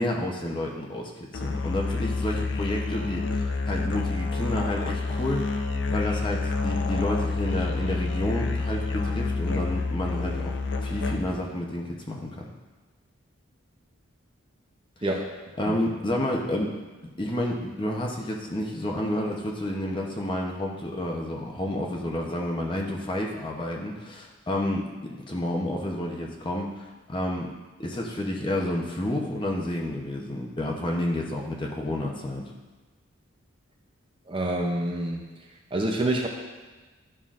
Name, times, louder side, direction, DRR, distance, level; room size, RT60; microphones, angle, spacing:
voice 1, 0.0-5.5 5.9-12.5 15.6-16.8 17.2-27.5 27.8-32.4, left 1 dB, 25° left, -1 dB, 0.7 m, -30 dB
Musical instrument, 1.3-11.5, left 3 dB, 55° left, 0.5 m, -28 dB
voice 2, 15.0-15.4 34.3-35.2 35.7-36.3, right 1 dB, 25° right, 1 dB, 0.6 m, -27 dB
11.0 x 5.6 x 2.5 m, 1.3 s
head